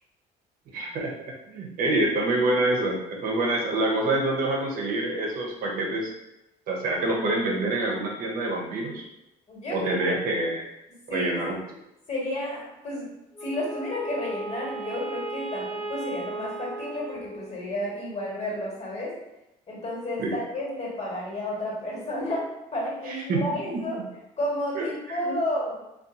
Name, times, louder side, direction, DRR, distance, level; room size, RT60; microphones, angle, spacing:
voice 1, 0.7-6.1 6.7-9.0 9.7-10.6 11.1-11.6 20.2-20.4 23.1-23.4 23.7-23.8 24.7-25.4, right 2 dB, 65° right, -1 dB, 0.7 m, -26 dB
voice 2, 9.5-10.1 10.9-11.4 12.1-13.1 13.4-19.1 19.7-22.4 22.7-24.0 24.4-25.8, left 1 dB, 45° left, -5 dB, 1.4 m, -31 dB
Wind instrument woodwind instrument, 13.3-17.8, right 2 dB, 5° right, 0.8 m, -36 dB
2.6 x 2.4 x 2.5 m, 0.90 s
supercardioid pair, 75°, 16 cm